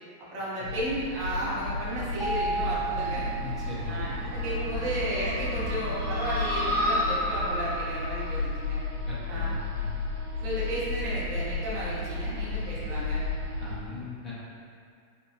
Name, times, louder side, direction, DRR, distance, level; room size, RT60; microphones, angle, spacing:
voice 1, 0.2-3.3 3.9-8.8 9.3-9.6 10.4-13.2, right 1 dB, 45° right, -8 dB, 1.1 m, -33 dB
sound 1, 0.6-13.7, left 2 dB, 75° right, 1.0 m, -31 dB
sound 2, 2.2-4.4, right 4 dB, ahead, 0.7 m, -33 dB
voice 2, 3.4-4.2 9.1-10.0 13.6-14.3, left 4 dB, 20° left, -9 dB, 1.2 m, -40 dB
4.2 x 2.6 x 3.3 m, 2.3 s
figure-of-eight pair, 90°, 0 cm